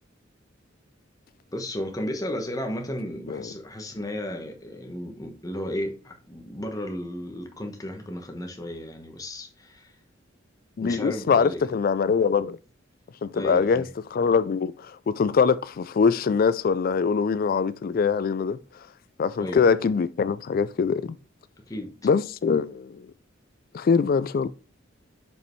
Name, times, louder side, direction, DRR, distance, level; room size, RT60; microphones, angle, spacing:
voice 1, 1.5-9.9 10.8-11.6 13.3-13.9 19.4-19.6 21.7-22.0, left 1 dB, 20° left, 1.1 m, -34 dB
voice 2, 10.8-12.6 13.2-13.8 14.1-18.6 19.2-21.1 22.0-23.1 23.7-24.5, left 5 dB, 45° left, 0.3 m, -23 dB
6.8 x 5.3 x 3.1 m
head